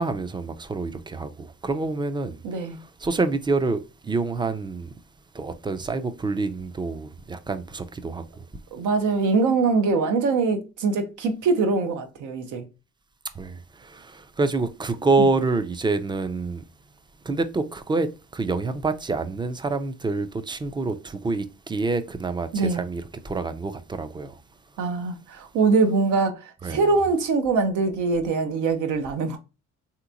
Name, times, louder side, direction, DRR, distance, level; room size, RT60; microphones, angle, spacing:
voice 1, 0.0-2.4 3.0-4.9 5.3-8.4 13.4-16.6 17.2-24.4 26.6-26.9, right 3 dB, 15° right, 0.4 m, -27 dB
voice 2, 2.4-2.8 8.7-12.7 15.2-15.3 22.5-22.8 24.8-29.4, right 4 dB, 85° right, 0.8 m, -23 dB
3.3 x 2.9 x 2.4 m
cardioid pair, 90°, 30 cm